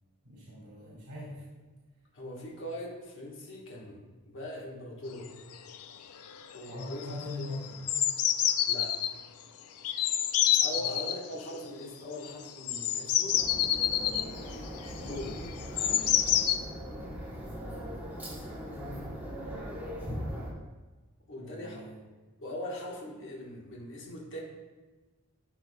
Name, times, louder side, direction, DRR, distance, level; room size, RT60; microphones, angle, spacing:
voice 1, 0.2-1.4 6.7-7.8 10.7-10.9 14.0-14.3 17.3-18.0 21.4-22.0, left 2 dB, 75° right, -6 dB, 2.1 m, -42 dB
voice 2, 2.1-5.4 6.5-7.1 7.4-7.5 8.6-9.1 10.6-13.4 15.0-15.5 21.3-21.9 22.4-24.4, left 1 dB, 60° left, -3 dB, 1.4 m, -41 dB
sound 1, 5.3-5.4 5.5-5.9 6.2-6.6 6.8-9.1 9.8-11.2 12.2-16.6, left 10 dB, 85° left, 0.4 m, -28 dB
sound 2, 13.3-20.5, equal, 10° right, 1.2 m, -40 dB
12.0 x 4.6 x 2.3 m, 1.2 s
head